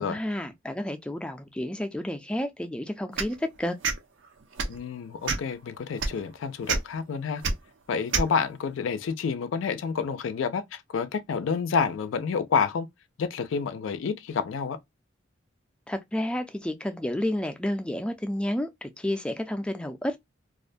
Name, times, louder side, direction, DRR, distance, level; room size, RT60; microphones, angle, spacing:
voice 1, 0.0-3.8 15.9-20.2, left 1 dB, 5° left, 0.3 m, -31 dB
sound 1, 3.2-3.3 3.8-4.0 4.5-4.8 5.2-5.5 6.0-6.1 6.7-6.8 7.4-7.5 8.1-8.3, right 4 dB, 75° right, 0.5 m, -26 dB
voice 2, 4.7-7.4 7.9-12.9 13.2-14.8, left 6 dB, 85° left, 0.4 m, -29 dB
2.4 x 2.1 x 2.4 m
head